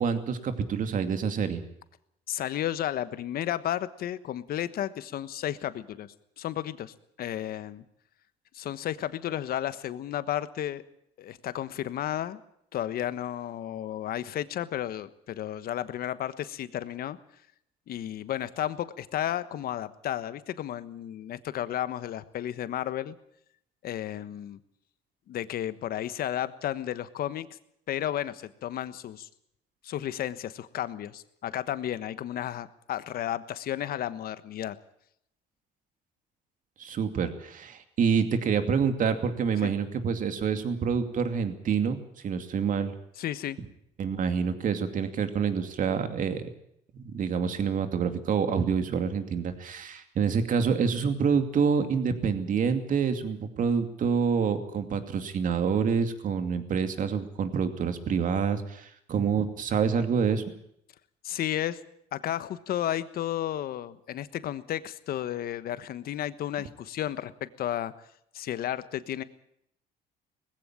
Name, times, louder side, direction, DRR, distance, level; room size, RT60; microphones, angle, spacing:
voice 1, 0.0-1.6 36.8-42.9 44.0-46.5 46.9-60.4, right 6 dB, 50° right, 8 dB, 2.5 m, -27 dB
voice 2, 2.3-7.8 8.5-10.8 11.2-12.4 12.7-17.2 17.9-23.1 23.8-24.6 25.3-27.5 27.9-29.3 29.8-34.7 39.6-39.7 43.2-43.6 61.2-61.8 62.1-67.9 68.3-69.2, left 11 dB, 65° left, 13 dB, 1.3 m, -33 dB
19.5 x 16.0 x 8.9 m, 0.74 s
cardioid pair, 110°, 17 cm